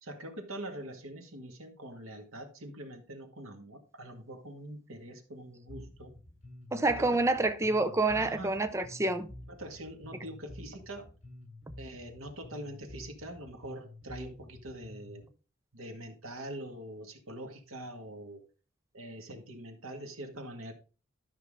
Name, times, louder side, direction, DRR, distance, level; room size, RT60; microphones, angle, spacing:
voice 1, 0.0-6.1 6.8-7.2 8.1-8.6 9.5-11.1 11.8-15.2 15.7-18.4 18.9-20.7, right 1 dB, 90° right, 2.0 m, -44 dB
Bass guitar, 5.7-15.3, left 1 dB, 35° left, 4.7 m, -49 dB
voice 2, 6.7-9.3, right 2 dB, 15° right, 0.5 m, -28 dB
12.5 x 5.9 x 3.6 m
head